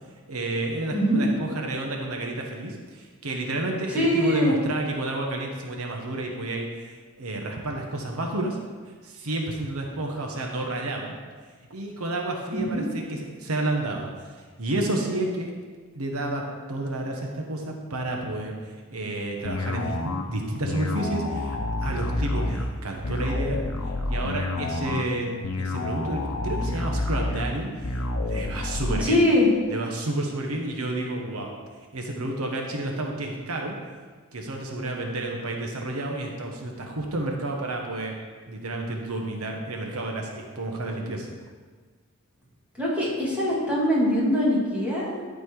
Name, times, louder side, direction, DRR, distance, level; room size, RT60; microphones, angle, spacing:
voice 1, 0.3-8.6 9.0-11.2 11.7-14.1 14.6-15.5 15.9-23.6 24.1-25.3 25.6-29.2 29.7-31.5 31.9-33.8 34.3-38.2 38.5-41.3, right 2 dB, 85° right, 1 dB, 1.2 m, -30 dB
voice 2, 0.9-1.2 3.9-4.5 12.5-12.8 29.0-29.5 42.8-45.2, left 1 dB, 5° right, -7 dB, 2.5 m, -22 dB
sound 1, 19.4-29.0, left 2 dB, 80° left, 0.8 m, -29 dB
12.0 x 4.4 x 4.7 m, 1.5 s
head